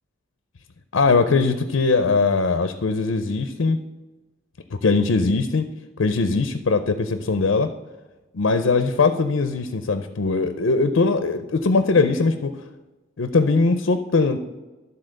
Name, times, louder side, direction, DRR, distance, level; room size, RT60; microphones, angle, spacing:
voice 1, 0.9-3.8 4.8-5.6 6.0-7.7 8.3-12.5 13.2-14.4, left 4 dB, 80° left, 9 dB, 0.5 m, -20 dB
12.0 x 4.1 x 6.4 m, 1.2 s
head